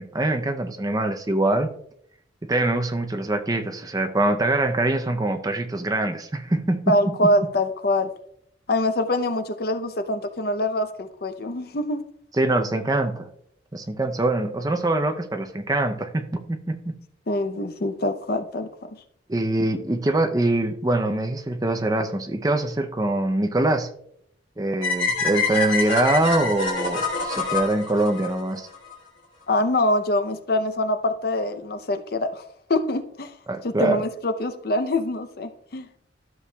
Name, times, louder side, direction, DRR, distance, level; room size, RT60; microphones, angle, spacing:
voice 1, 0.0-1.7 2.4-7.3 12.4-13.3 13.7-17.0 19.3-23.9 24.6-28.7 33.5-34.0, right 2 dB, 20° right, 6 dB, 0.5 m, -24 dB
voice 2, 6.9-8.1 8.7-12.0 17.3-18.7 29.5-32.4 32.7-33.3 33.6-35.9, left 1 dB, 50° left, 9 dB, 0.6 m, -24 dB
sound 1, 24.8-28.9, left 3 dB, 85° left, 2.7 m, -26 dB
12.5 x 6.7 x 2.3 m, 0.70 s
head